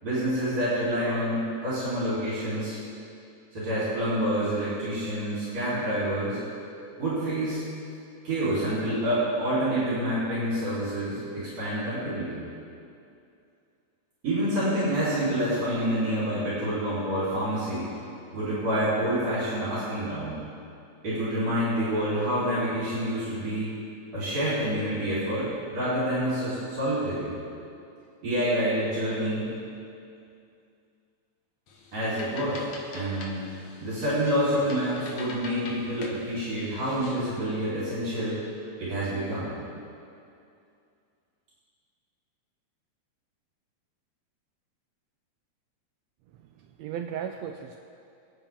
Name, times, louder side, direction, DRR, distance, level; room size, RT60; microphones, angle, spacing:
voice 1, 0.0-2.8 3.5-6.4 7.0-7.6 8.2-12.4 14.2-17.9 18.3-20.4 21.0-23.7 24.1-27.3 28.2-29.5 31.9-33.5 33.8-38.4 38.8-39.5, right 1 dB, 60° right, -11 dB, 4.9 m, -27 dB
sound 1, 31.7-37.4, left 3 dB, 65° left, 2.2 m, -44 dB
voice 2, 46.4-47.8, right 8 dB, 80° right, 5 dB, 1.7 m, -36 dB
24.5 x 8.7 x 3.6 m, 2.5 s
omnidirectional pair, 3.3 m